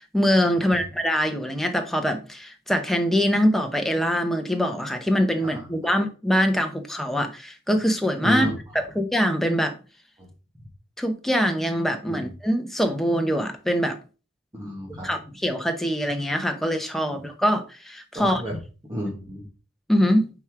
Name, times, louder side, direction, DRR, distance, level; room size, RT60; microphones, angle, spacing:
voice 1, 0.1-8.5 8.7-9.8 11.0-14.0 15.0-18.4 19.9-20.3, equal, ahead, 0.9 m, -23 dB
voice 2, 5.4-5.9 8.2-8.5 10.2-10.3 12.1-12.3 14.5-15.1 17.1-17.2 18.1-18.6 18.9-19.5, equal, 20° right, 1.4 m, -32 dB
5.4 x 4.5 x 4.7 m
head